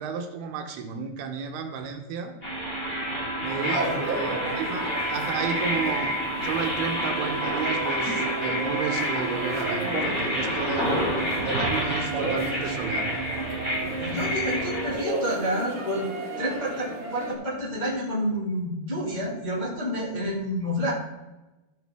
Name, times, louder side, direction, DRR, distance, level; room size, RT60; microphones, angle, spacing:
voice 1, 0.0-2.4 3.4-11.0 11.4-13.2, right 6 dB, 75° right, 5 dB, 2.5 m, -32 dB
sound 1, 2.4-14.9, equal, 15° left, 3.6 m, -29 dB
sound 2, 3.4-17.3, right 2 dB, 40° right, 1.1 m, -34 dB
voice 2, 3.5-3.9 14.0-16.1 16.4-20.9, equal, 75° left, -6 dB, 0.4 m, -29 dB
14.0 x 6.6 x 3.5 m, 1.0 s
omnidirectional pair, 5.2 m